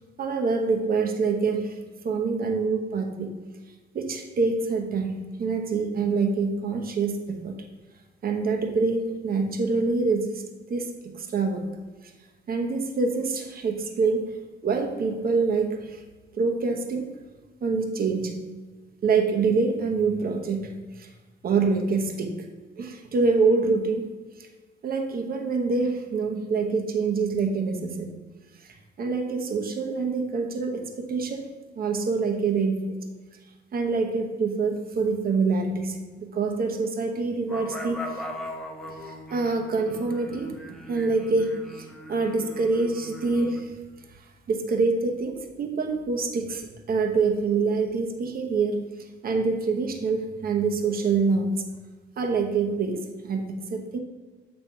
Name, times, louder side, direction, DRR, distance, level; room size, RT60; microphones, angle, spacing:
voice 1, 0.2-1.8 2.0-3.3 3.9-7.5 8.2-10.4 10.7-11.7 12.5-14.3 14.6-16.0 16.3-17.1 17.6-18.4 19.0-21.1 21.4-22.4 22.8-24.1 24.4-24.5 24.8-28.2 28.6-28.7 29.0-31.5 31.7-33.0 33.7-38.2 39.0-40.6 40.9-43.7 44.5-48.8 49.2-51.7 52.2-54.0, right 4 dB, 50° right, 3 dB, 1.0 m, -26 dB
sound 1, 37.5-43.6, left 1 dB, ahead, 0.8 m, -40 dB
7.3 x 3.3 x 5.7 m, 1.3 s
cardioid pair, 90°, 20 cm